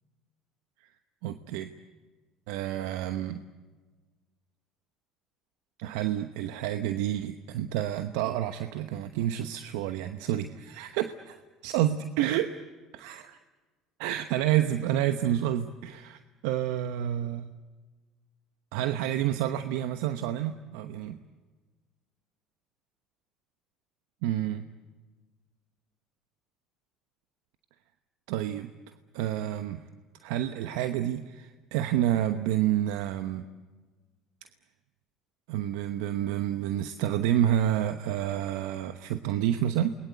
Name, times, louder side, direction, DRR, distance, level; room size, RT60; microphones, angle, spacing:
voice 1, 1.2-1.7 2.5-3.4 5.8-12.7 12.9-13.4 14.0-17.5 18.7-21.2 24.2-24.7 28.3-28.7 29.1-29.8 30.2-33.4 35.5-39.9, right 11 dB, 80° right, 10 dB, 1.0 m, -29 dB
28.5 x 21.5 x 8.2 m, 1.3 s
supercardioid pair, 80°, 0 cm